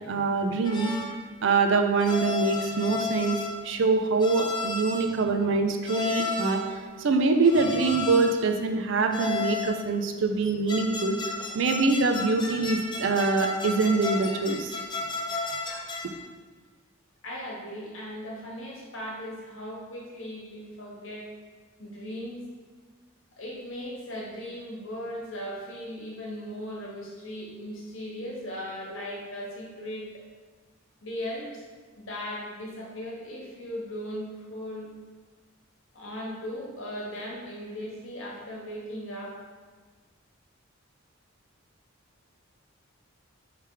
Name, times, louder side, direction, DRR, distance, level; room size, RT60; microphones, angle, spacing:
voice 1, 0.1-0.9 1.4-3.4 3.6-6.6 7.0-11.2 11.5-14.7, right 3 dB, 60° right, 6 dB, 0.4 m, -24 dB
sound 1, 0.6-1.2 2.0-3.6 4.2-5.1 5.8-6.7 7.4-8.5 9.1-9.8 10.4-16.2, left 3 dB, 20° left, 0.4 m, -33 dB
voice 2, 17.2-21.3 21.8-22.4 23.4-30.2 31.0-31.6 32.0-34.9 35.9-39.4, equal, 70° left, -3 dB, 1.1 m, -37 dB
3.4 x 3.3 x 4.6 m, 1.4 s
head